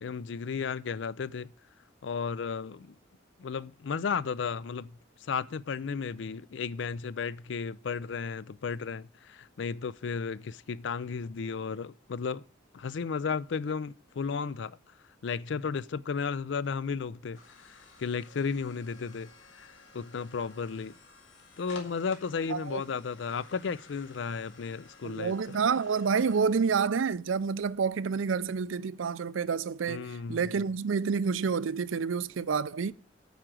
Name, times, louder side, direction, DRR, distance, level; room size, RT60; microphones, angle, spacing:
voice 1, 0.0-1.5 2.0-2.9 3.4-4.9 5.2-12.4 12.7-14.8 15.2-17.4 17.7-21.0 21.6-25.6 29.9-30.6, left 5 dB, 65° left, 0.4 m, -34 dB
sound 1, 17.0-28.8, left 3 dB, 85° left, 2.3 m, -55 dB
voice 2, 22.5-22.8 25.0-32.9, right 5 dB, 90° right, 0.5 m, -29 dB
9.3 x 5.0 x 7.5 m
head